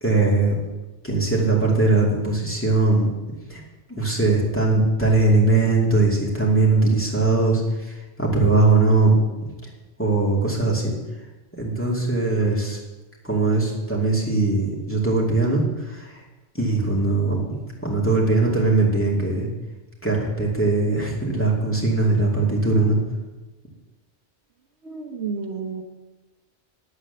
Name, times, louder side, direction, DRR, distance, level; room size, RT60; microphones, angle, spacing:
voice 1, 0.0-0.6 1.0-3.1 3.5-3.6 3.9-9.2 10.0-10.9 11.6-12.8 13.2-16.2 16.5-17.4 17.8-19.5 20.0-23.0, right 3 dB, 10° left, -4 dB, 2.5 m, -20 dB
voice 2, 24.8-25.8, right 5 dB, 65° right, 3 dB, 1.3 m, -31 dB
10.0 x 8.2 x 6.9 m, 1.1 s
omnidirectional pair, 1.3 m